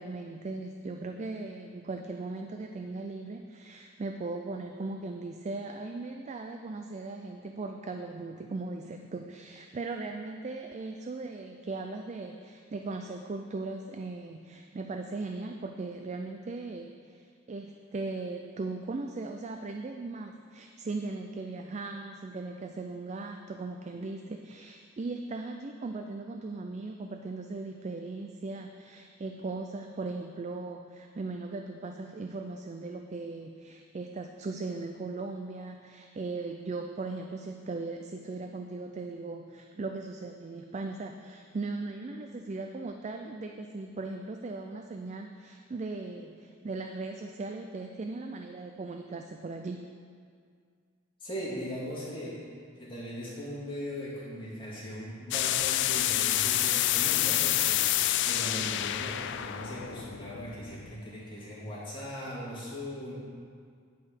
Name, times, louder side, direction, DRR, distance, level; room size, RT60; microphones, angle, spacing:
voice 1, 0.0-49.8, right 3 dB, 35° right, 5 dB, 0.4 m, -38 dB
voice 2, 51.2-52.4 52.8-63.1, equal, 25° left, -8 dB, 2.8 m, -39 dB
sound 1, 55.3-61.0, left 13 dB, 60° left, 0.3 m, -28 dB
10.0 x 5.4 x 6.4 m, 2.2 s
head